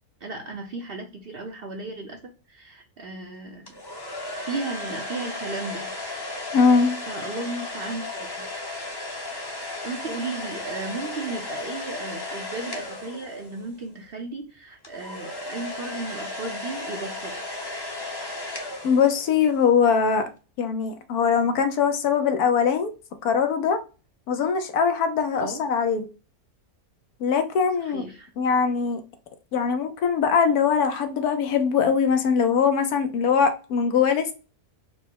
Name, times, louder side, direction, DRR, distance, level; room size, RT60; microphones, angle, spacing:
voice 1, 0.2-2.2 2.5-3.8 4.3-5.9 7.1-8.5 9.8-17.4 25.3-25.6 27.8-28.3, right 3 dB, 55° right, 0.7 m, -35 dB
sound 1, 3.7-13.8 14.8-19.6, left 2 dB, 20° left, 0.6 m, -35 dB
voice 2, 6.5-7.0 18.8-20.2 20.6-22.9 23.2-23.8 24.3-26.1 27.2-28.0 28.4-29.0 29.5-34.3, left 6 dB, 85° left, 1.3 m, -21 dB
4.4 x 2.1 x 4.5 m
omnidirectional pair, 1.6 m